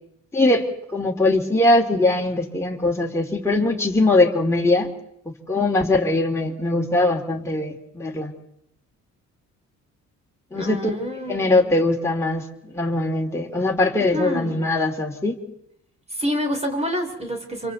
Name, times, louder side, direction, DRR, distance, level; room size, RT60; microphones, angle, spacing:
voice 1, 0.3-4.9 5.5-8.3 10.5-10.9 11.3-15.4, left 2 dB, 10° left, 0 dB, 2.6 m, -21 dB
voice 2, 10.5-11.8 13.9-14.7 16.1-17.7, equal, 20° right, 4 dB, 3.2 m, -28 dB
27.5 x 23.5 x 4.1 m, 0.76 s
cardioid pair, 90°, 30 cm